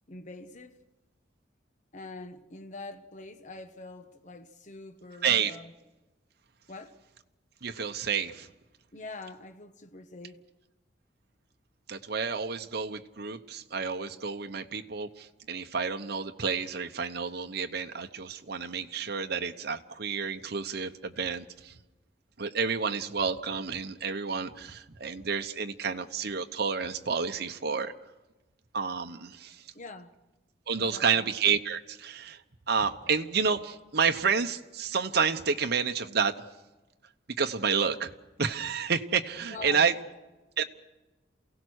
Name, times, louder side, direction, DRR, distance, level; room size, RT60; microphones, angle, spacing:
voice 1, 0.1-0.8 1.9-5.7 6.7-7.0 8.9-10.4 29.7-30.1 30.8-31.2 39.5-39.9, left 2 dB, 40° left, 1.1 m, -44 dB
voice 2, 5.2-5.5 7.6-8.5 11.9-21.7 22.4-27.9 28.7-29.6 30.7-32.4 32.7-36.3 37.4-38.1 38.4-39.9 40.6-40.7, right 6 dB, 60° right, 0.9 m, -30 dB
28.5 x 17.0 x 6.4 m
head